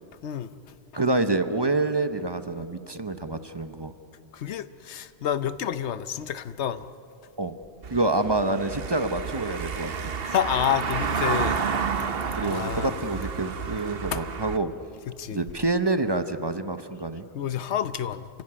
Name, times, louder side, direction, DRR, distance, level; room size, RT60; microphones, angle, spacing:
voice 1, 0.2-0.6 4.3-6.9 10.2-11.6 12.4-12.9 14.1-14.2 15.1-15.4 17.3-18.3, left 9 dB, 80° left, 14 dB, 1.0 m, -29 dB
voice 2, 0.9-3.9 7.4-7.5 7.9-10.1 11.6-11.7 12.4-14.7 15.3-17.2, right 2 dB, 25° right, 10 dB, 0.7 m, -27 dB
Car passing by / Engine, 7.8-14.6, right 6 dB, 60° right, 1.2 m, -30 dB
28.0 x 16.0 x 9.8 m, 2.6 s
omnidirectional pair, 1.1 m